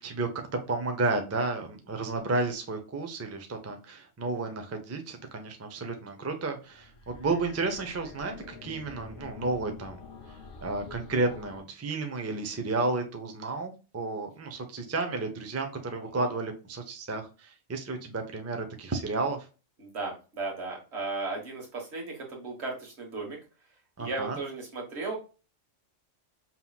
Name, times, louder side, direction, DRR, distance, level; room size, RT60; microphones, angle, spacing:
voice 1, 0.0-10.0 10.6-19.5 24.0-24.4, right 3 dB, 25° right, 5 dB, 0.3 m, -32 dB
sound 1, 6.7-11.6, left 5 dB, 55° left, 0.8 m, -46 dB
voice 2, 19.8-23.4 24.0-25.2, right 3 dB, 60° right, -1 dB, 1.6 m, -36 dB
5.5 x 2.9 x 2.3 m, 0.32 s
omnidirectional pair, 1.3 m